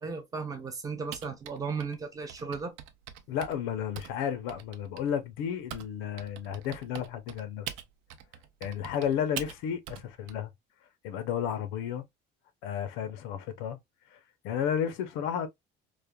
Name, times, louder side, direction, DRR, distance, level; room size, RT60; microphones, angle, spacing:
voice 1, 0.0-2.7, right 5 dB, 20° right, 0.4 m, -35 dB
Typing, 1.1-5.9 6.2-10.3, right 11 dB, 75° right, 0.5 m, -43 dB
voice 2, 3.3-7.7 8.6-10.5 11.0-12.0 12.6-13.8 14.1-15.5, left 8 dB, 85° left, 0.6 m, -32 dB
3.2 x 2.0 x 2.2 m
cardioid pair, 180°, 20 cm